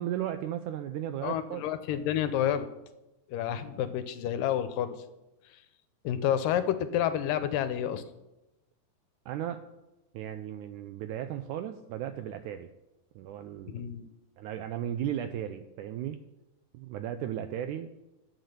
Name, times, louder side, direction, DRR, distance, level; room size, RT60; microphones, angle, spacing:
voice 1, 0.0-1.6 9.3-9.6 10.1-12.7 13.2-13.9 14.4-16.2 16.7-17.9, right 11 dB, 85° right, 9 dB, 1.8 m, -35 dB
voice 2, 1.2-2.7 3.3-5.0 6.0-8.0 13.7-14.1, left 10 dB, 80° left, 10 dB, 2.3 m, -29 dB
10.5 x 8.1 x 6.7 m, 0.95 s
omnidirectional pair, 4.0 m